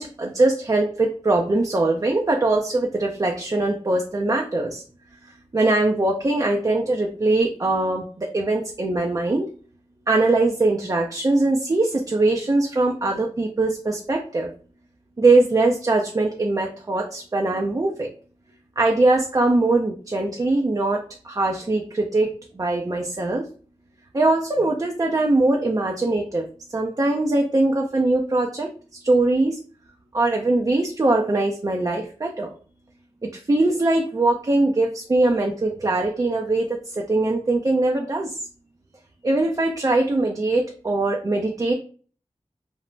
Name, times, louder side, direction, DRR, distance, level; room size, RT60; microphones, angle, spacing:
voice 1, 0.0-4.8 5.5-9.5 10.1-14.5 15.2-18.1 18.8-23.5 24.1-26.5 26.7-28.7 29.0-29.6 30.1-32.5 33.2-38.4 39.2-41.7, right 2 dB, 30° right, 1 dB, 0.4 m, -21 dB
3.1 x 2.0 x 2.4 m, 0.42 s
wide cardioid pair, 55°, 12 cm